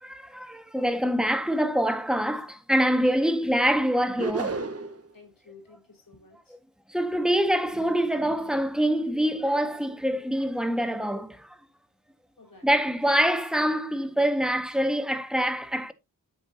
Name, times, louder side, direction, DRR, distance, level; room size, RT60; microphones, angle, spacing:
voice 1, 0.0-4.6 6.9-11.6 12.6-15.9, equal, ahead, 1.7 m, -25 dB
sound 1, 4.2-5.1, right 3 dB, 40° right, 1.4 m, -31 dB
voice 2, 5.1-6.6 12.4-12.7, left 3 dB, 65° left, 4.9 m, -53 dB
9.6 x 7.9 x 2.9 m
cardioid pair, 45°, 37 cm